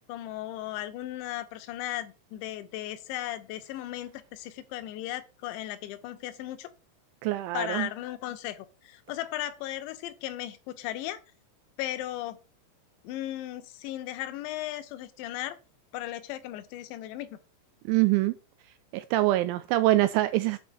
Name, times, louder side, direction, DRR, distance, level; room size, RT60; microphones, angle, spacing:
voice 1, 0.1-6.7 7.5-11.2 11.8-12.4 13.0-15.6 15.9-17.4, left 14 dB, 75° left, 2.9 m, -36 dB
voice 2, 7.2-7.9 17.9-18.3 18.9-20.6, right 17 dB, 85° right, 2.6 m, -24 dB
8.6 x 4.4 x 6.9 m
omnidirectional pair, 6.0 m